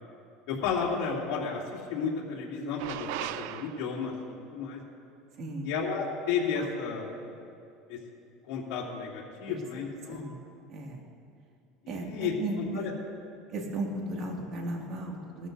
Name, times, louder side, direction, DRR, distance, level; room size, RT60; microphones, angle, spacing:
voice 1, 0.5-4.1 4.5-4.8 5.6-7.1 7.9-8.0 8.4-10.3 11.8-12.9, left 5 dB, 65° left, -5 dB, 2.8 m, -32 dB
sound 1, 2.8-4.1 6.5-6.9, right 13 dB, 75° right, 0.4 m, -38 dB
voice 2, 5.4-5.7 9.5-9.6 10.1-10.3 10.7-11.0 11.9-12.9 13.5-15.5, right 2 dB, 45° right, 0 dB, 2.2 m, -35 dB
19.0 x 13.0 x 2.7 m, 2.5 s
supercardioid pair, 125°, 0 cm